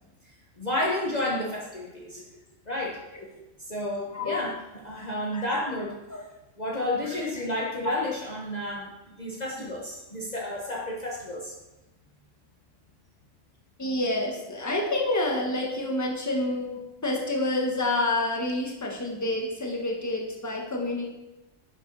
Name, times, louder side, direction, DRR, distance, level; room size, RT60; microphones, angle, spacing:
voice 1, 0.6-2.2 2.7-3.0 3.6-4.5 4.8-5.9 6.6-8.9 9.2-11.5, left 1 dB, 35° left, -4 dB, 1.2 m, -31 dB
voice 2, 5.3-5.6 6.1-6.2 7.1-7.2 7.8-8.0 13.8-21.1, left 2 dB, 15° left, 0 dB, 1.4 m, -28 dB
9.9 x 7.1 x 4.0 m, 1.0 s
omnidirectional pair, 1.3 m